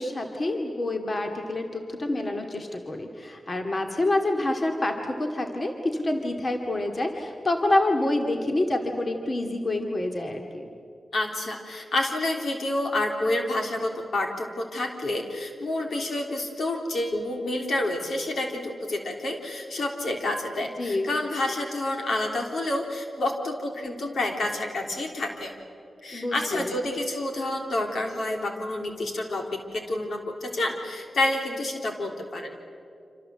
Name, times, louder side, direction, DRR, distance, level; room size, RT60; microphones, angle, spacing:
voice 1, 0.0-10.7 20.8-21.1 26.1-26.8, left 1 dB, 35° left, 3 dB, 2.3 m, -27 dB
voice 2, 11.1-25.5 26.0-32.5, left 1 dB, 70° left, 3 dB, 3.6 m, -29 dB
27.0 x 26.5 x 7.9 m, 2.5 s
wide cardioid pair, 85°, 0 cm